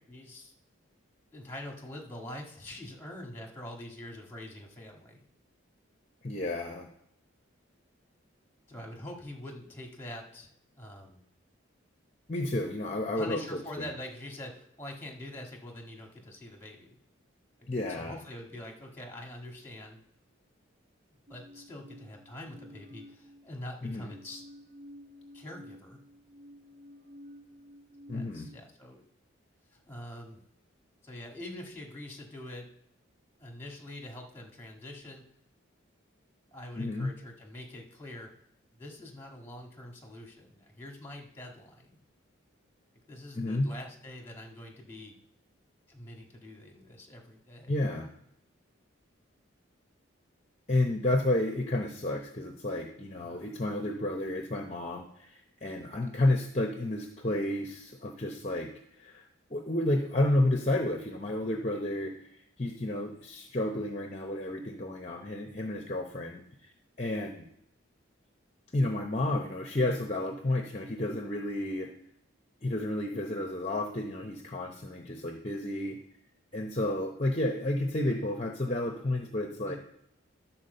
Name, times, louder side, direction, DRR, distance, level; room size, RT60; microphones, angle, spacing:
voice 1, 0.1-0.5 1.3-5.2 8.7-11.2 13.1-17.0 17.6-20.0 21.3-24.4 25.3-26.0 28.1-29.1 29.7-30.4 31.0-32.7 33.4-35.2 36.5-38.3 38.7-42.0 43.1-45.1 45.9-47.8 53.2-53.5 56.0-56.2 74.7-74.8 79.7-79.8, left 1 dB, 10° left, 1 dB, 1.7 m, -44 dB
voice 2, 6.2-6.9 12.3-13.9 17.7-18.1 23.8-24.1 28.1-28.5 36.8-37.1 43.3-43.7 47.7-48.1 50.7-66.7 67.0-67.4 68.7-71.9 72.6-76.0 76.5-79.8, left 1 dB, 30° left, 3 dB, 0.7 m, -31 dB
sound 1, 21.3-23.6 24.0-28.6, equal, 55° right, 1.5 m, -52 dB
11.5 x 4.5 x 6.6 m, 0.75 s
head